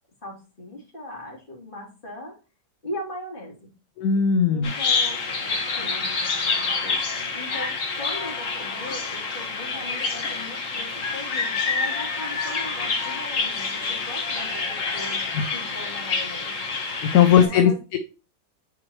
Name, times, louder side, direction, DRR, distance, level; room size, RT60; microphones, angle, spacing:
voice 1, 0.2-2.4 2.8-3.7 4.5-7.0 7.3-15.3 15.5-17.8, left 1 dB, 30° left, -2 dB, 2.9 m, -39 dB
voice 2, 4.0-4.7 15.3-15.4 17.1-18.0, left 8 dB, 70° left, 8 dB, 1.1 m, -18 dB
Bird vocalization bird call bird song, 4.6-17.4, left 4 dB, 50° left, 1.6 m, -27 dB
8.7 x 4.4 x 2.9 m, 0.32 s
omnidirectional pair, 1.9 m